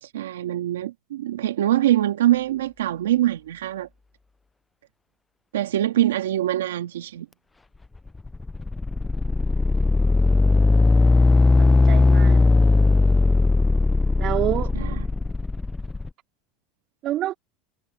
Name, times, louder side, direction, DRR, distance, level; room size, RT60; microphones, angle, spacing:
voice 1, 0.0-3.9 5.5-7.3 14.7-15.0, right 13 dB, 90° right, 1.9 m, -23 dB
sound 1, 8.1-16.1, left 3 dB, 15° left, 0.6 m, -18 dB
voice 2, 11.6-12.5 14.2-14.7 17.0-17.3, right 13 dB, 50° right, 4.5 m, -27 dB
hypercardioid pair, 100°, 0 cm